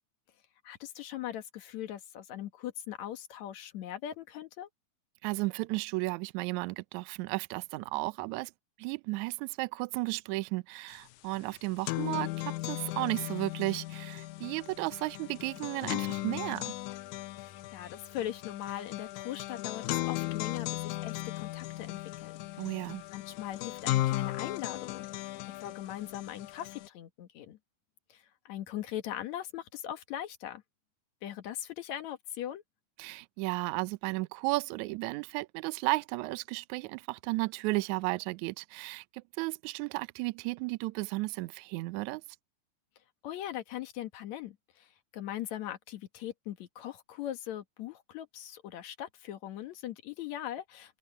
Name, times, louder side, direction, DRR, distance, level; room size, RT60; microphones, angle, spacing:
voice 1, 0.6-4.7 17.4-22.7 23.1-27.6 28.1-30.6 31.2-32.6 43.2-51.0, left 11 dB, 60° left, 2.3 m, -40 dB
voice 2, 5.2-8.5 8.8-16.7 22.6-23.0 33.0-42.2, right 22 dB, 80° right, 1.8 m, -34 dB
sound 1, 10.9-11.0 11.3-26.9, left 17 dB, 80° left, 1.8 m, -36 dB
omnidirectional pair, 3.9 m